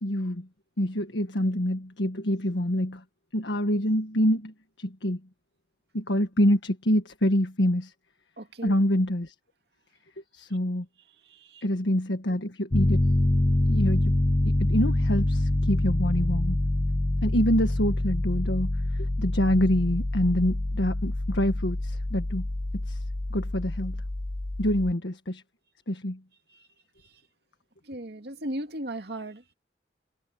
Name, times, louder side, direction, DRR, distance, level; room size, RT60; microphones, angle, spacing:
voice 1, 0.0-0.5 0.8-3.0 3.3-5.2 5.9-7.9 8.6-9.3 10.3-10.8 11.6-13.0 13.7-14.1 14.4-16.6 17.2-22.5 22.8-23.0 23.3-24.0 24.6-25.4 25.9-26.2, equal, 90° left, 1.6 m, -26 dB
voice 2, 8.4-8.8 11.2-11.6 26.5-26.7 27.0-27.2 27.8-29.5, right 1 dB, 65° right, 2.3 m, -37 dB
Piano, 12.7-24.9, left 1 dB, 25° left, 0.6 m, -26 dB
head